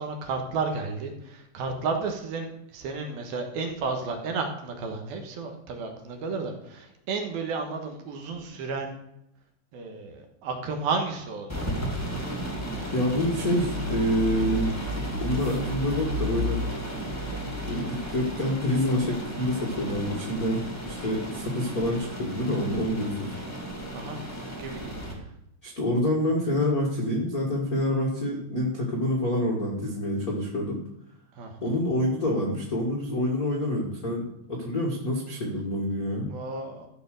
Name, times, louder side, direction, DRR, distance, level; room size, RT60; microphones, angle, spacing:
voice 1, 0.0-8.9 9.7-11.8 23.9-25.0 31.4-31.7 36.3-36.9, right 4 dB, 70° right, 4 dB, 3.0 m, -32 dB
sound 1, 11.5-25.1, equal, 25° left, 0.3 m, -33 dB
voice 2, 12.9-16.6 17.6-23.3 25.6-30.8 31.6-36.3, left 1 dB, 60° left, -2 dB, 0.9 m, -27 dB
13.5 x 4.9 x 6.5 m, 0.79 s
omnidirectional pair, 4.8 m